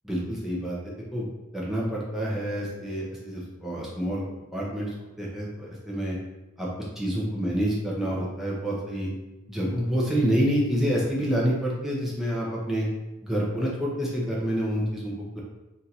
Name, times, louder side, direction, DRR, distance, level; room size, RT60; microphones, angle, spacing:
voice 1, 0.1-1.3 1.5-4.2 4.5-4.9 5.2-6.2 6.6-6.7 7.0-9.1 9.5-12.9 13.2-15.4, equal, ahead, -6 dB, 0.7 m, -28 dB
2.7 x 2.5 x 4.3 m, 1.1 s
head